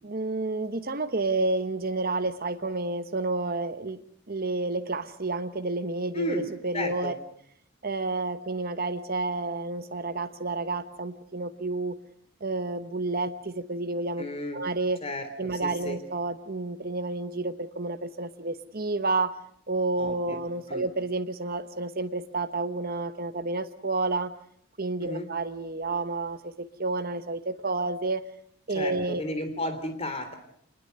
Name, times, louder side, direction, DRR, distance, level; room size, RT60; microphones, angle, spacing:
voice 1, 0.0-4.0 4.3-7.1 7.8-12.0 12.4-14.2 14.5-15.0 15.4-19.3 19.7-24.3 24.8-28.2 28.7-29.2, right 3 dB, 45° right, 8 dB, 1.1 m, -30 dB
voice 2, 6.1-6.5 6.7-7.1 14.2-14.6 15.0-15.3 15.6-16.0 20.0-20.4 20.7-20.8 25.0-25.3 28.7-30.3, left 1 dB, 30° left, 8 dB, 3.5 m, -33 dB
26.0 x 21.0 x 6.7 m, 0.64 s
head